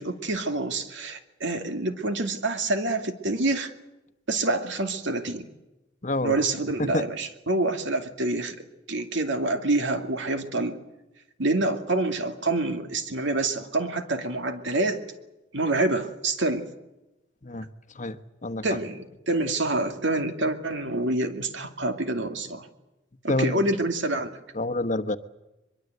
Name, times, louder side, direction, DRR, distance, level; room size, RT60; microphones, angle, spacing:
voice 1, 0.0-3.7 4.3-5.5 6.2-8.6 8.9-10.8 11.4-15.0 15.5-16.7 18.6-22.7 23.2-24.3, right 2 dB, 65° right, 6 dB, 2.5 m, -27 dB
voice 2, 6.0-6.4 6.8-7.1 17.4-17.7 17.9-18.6 23.3-23.6 24.5-25.2, left 2 dB, 40° left, 10 dB, 1.2 m, -28 dB
23.5 x 22.5 x 8.1 m, 0.98 s
head